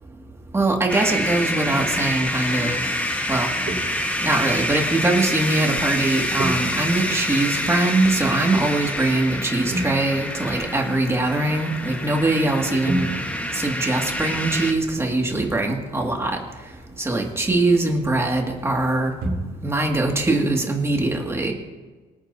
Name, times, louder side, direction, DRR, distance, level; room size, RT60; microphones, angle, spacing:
voice 1, 0.5-2.8 3.3-3.5 4.2-13.1 13.5-16.4 17.0-19.1 19.6-21.5, right 2 dB, 15° right, 1 dB, 2.0 m, -22 dB
sound 1, 0.9-14.7, left 1 dB, 10° left, 1.4 m, -27 dB
sound 2, 1.7-2.1 2.9-3.1 3.7-4.4 6.4-8.5 9.7-11.6 12.9-18.1 18.4-18.6 19.2-19.6 19.9-20.0, right 1 dB, 70° right, 4.5 m, -33 dB
25.0 x 8.9 x 2.7 m, 1.3 s
cardioid pair, 110°, 17 cm